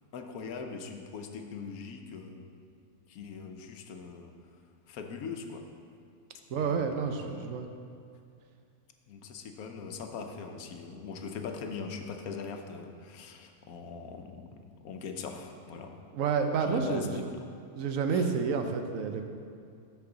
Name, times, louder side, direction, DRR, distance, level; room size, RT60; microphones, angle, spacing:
voice 1, 0.1-2.6 3.1-4.3 4.9-5.6 6.6-7.5 9.1-15.9 16.6-17.4 18.1-18.3, left 5 dB, 90° left, 4 dB, 1.2 m, -41 dB
voice 2, 6.5-7.7 16.1-17.2 17.7-19.3, right 5 dB, 70° right, 5 dB, 1.0 m, -29 dB
13.0 x 4.6 x 3.9 m, 2.4 s
omnidirectional pair, 1.5 m